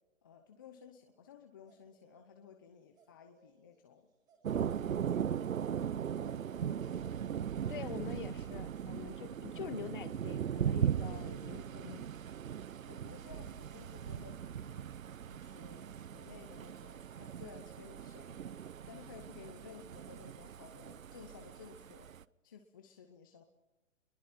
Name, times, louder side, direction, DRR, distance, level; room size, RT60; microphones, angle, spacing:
voice 1, 0.2-4.1 4.5-5.5 6.2-7.3 11.1-12.0 12.9-14.9 15.3-18.4 18.9-22.1 22.4-23.4, left 6 dB, 15° left, 4 dB, 0.8 m, -55 dB
sound 1, 1.7-2.3 2.5-2.6 2.8-7.5, right 4 dB, 10° right, 2.0 m, -68 dB
Thunder, 4.4-22.2, right 9 dB, 85° right, 0.8 m, -39 dB
voice 2, 7.7-12.0, left 8 dB, 40° left, 10 dB, 1.9 m, -45 dB
29.5 x 22.5 x 4.4 m, 1.0 s
hypercardioid pair, 165°, 40 cm